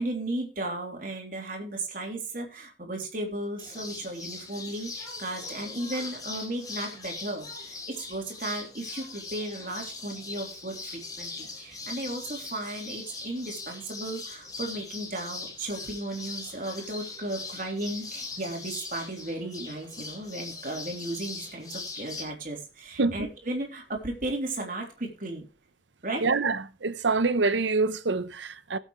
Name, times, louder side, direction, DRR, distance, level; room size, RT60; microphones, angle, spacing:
voice 1, 0.0-25.4 26.0-26.3, right 1 dB, 45° right, 3.4 m, -35 dB
sound 1, 3.6-22.2, left 3 dB, 20° left, 3.5 m, -40 dB
voice 2, 26.2-28.8, right 3 dB, 90° right, 0.9 m, -26 dB
18.5 x 8.0 x 3.2 m
head